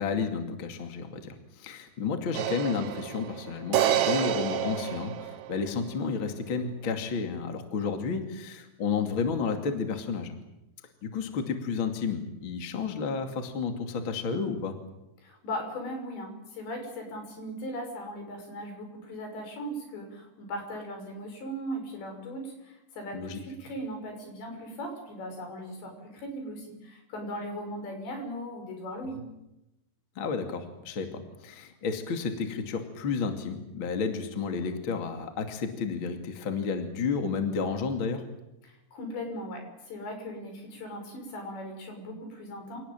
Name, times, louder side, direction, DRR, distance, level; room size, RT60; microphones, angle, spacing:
voice 1, 0.0-10.3 11.0-14.8 23.1-23.4 30.2-38.2, left 5 dB, 35° left, 6 dB, 2.6 m, -31 dB
sound 1, 2.3-5.7, right 12 dB, 80° right, 3.4 m, -29 dB
voice 2, 15.2-29.2 38.6-42.8, equal, 80° left, 4 dB, 8.2 m, -38 dB
27.0 x 18.5 x 9.0 m, 0.91 s
omnidirectional pair, 5.0 m